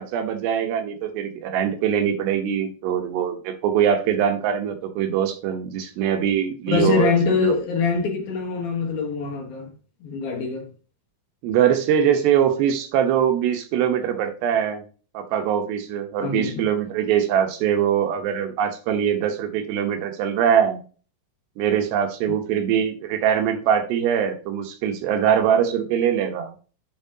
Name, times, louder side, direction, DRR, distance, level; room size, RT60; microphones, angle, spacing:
voice 1, 0.0-7.5 11.4-14.8 15.1-20.8 21.6-26.5, right 8 dB, 75° right, 3.0 m, -22 dB
voice 2, 6.7-9.7 10.0-10.7 16.2-16.6, left 5 dB, 65° left, 2.9 m, -23 dB
7.9 x 7.1 x 2.8 m
omnidirectional pair, 5.1 m